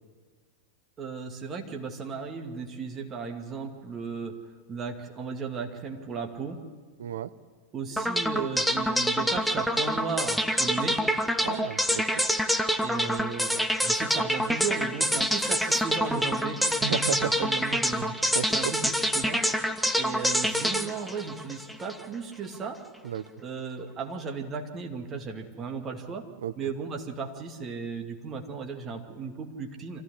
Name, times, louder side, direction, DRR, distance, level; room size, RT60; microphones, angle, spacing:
voice 1, 1.0-4.4 4.7-6.6 7.7-11.1 12.8-19.4 20.0-22.8 23.4-26.3 26.6-30.0, right 5 dB, 25° right, 3 dB, 2.4 m, -35 dB
voice 2, 7.0-7.3 11.4-12.3 16.8-17.5 18.3-18.8 23.0-23.3 26.4-26.5, right 9 dB, 60° right, 13 dB, 0.8 m, -33 dB
sound 1, 8.0-22.0, equal, ahead, 1.0 m, -26 dB
25.0 x 15.0 x 9.9 m, 1.5 s
figure-of-eight pair, 90°, 0 cm